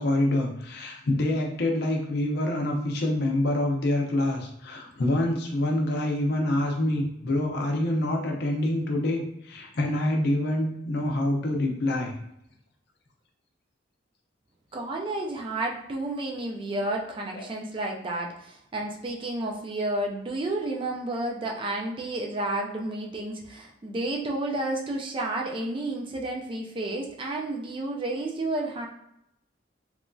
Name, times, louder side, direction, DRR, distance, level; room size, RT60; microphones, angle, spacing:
voice 1, 0.0-12.1 17.3-17.4, left 1 dB, 55° left, 1 dB, 0.6 m, -26 dB
voice 2, 14.7-28.9, right 2 dB, 25° right, 1 dB, 0.3 m, -31 dB
3.0 x 2.5 x 2.2 m, 0.79 s
head